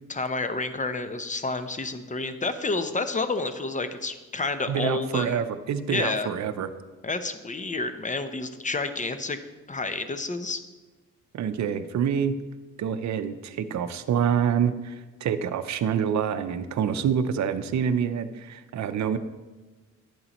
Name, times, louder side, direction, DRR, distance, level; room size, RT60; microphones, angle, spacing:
voice 1, 0.1-5.4 5.9-6.3 7.0-9.4 9.7-10.6, left 3 dB, 25° left, 10 dB, 0.7 m, -29 dB
voice 2, 4.7-6.7 11.3-12.4 12.8-19.2, right 8 dB, 60° right, 9 dB, 0.6 m, -26 dB
11.0 x 8.0 x 3.0 m, 1.2 s
cardioid pair, 75°, 32 cm